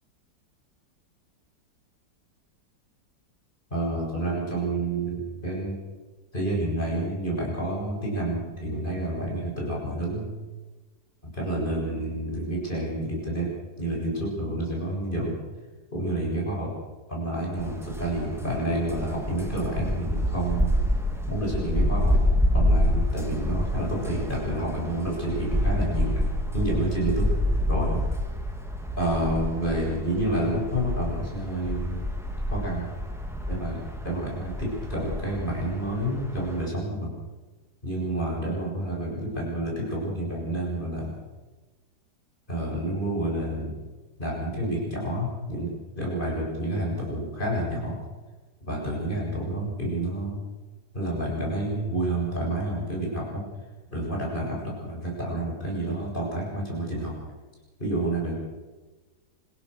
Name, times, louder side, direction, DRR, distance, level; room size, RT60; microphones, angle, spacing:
voice 1, 3.7-5.8 6.3-10.3 11.2-13.5 13.8-15.4 15.9-16.7 17.1-20.7 21.3-22.2 22.5-26.2 26.5-27.3 27.7-28.0 29.0-32.1 32.5-32.9 33.5-37.1 37.8-41.1 42.5-43.7 44.2-48.0 48.7-50.4 50.9-53.4 53.9-57.1 57.8-58.4, right 1 dB, 25° left, -2 dB, 7.7 m, -29 dB
sound 1, 17.6-36.7, equal, ahead, 2.6 m, -28 dB
26.0 x 16.5 x 6.8 m, 1.2 s
omnidirectional pair, 2.0 m